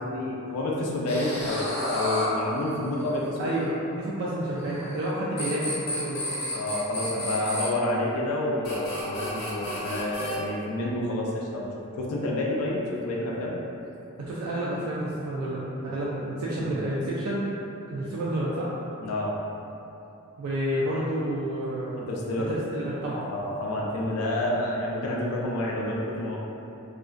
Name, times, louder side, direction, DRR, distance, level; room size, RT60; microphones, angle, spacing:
voice 1, 0.0-3.5 6.5-13.6 15.8-16.0 16.6-16.7 19.0-19.4 22.0-22.5 23.2-26.4, left 1 dB, 85° left, -3 dB, 0.4 m, -29 dB
sound 1, 1.1-3.4 4.6-5.1 5.4-7.7 8.6-10.3, left 1 dB, 50° left, 0.6 m, -32 dB
voice 2, 3.4-6.2 14.2-17.5 17.9-18.7 20.4-22.1 22.4-23.3, right 1 dB, 80° right, -6 dB, 0.3 m, -30 dB
2.4 x 2.1 x 2.4 m, 2.8 s
head